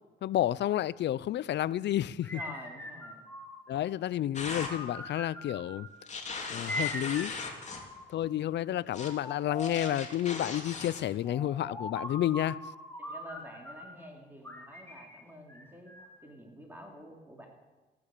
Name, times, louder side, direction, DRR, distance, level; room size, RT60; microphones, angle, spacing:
voice 1, 0.2-2.4 3.7-5.9 6.5-7.4 8.1-12.6, left 12 dB, 60° left, 0.5 m, -30 dB
sound 1, 2.2-3.8 4.4-6.0 6.7-8.3 8.9-10.1 11.2-14.0 14.4-16.2, left 1 dB, 10° left, 2.7 m, -42 dB
voice 2, 2.3-3.2 13.0-15.9 16.2-17.5, right 1 dB, 10° right, 3.5 m, -48 dB
sound 2, 4.3-4.7 6.1-7.8 8.9-9.1 9.6-11.0, left 4 dB, 35° left, 2.9 m, -39 dB
15.0 x 12.0 x 6.7 m
cardioid pair, 90°, 20 cm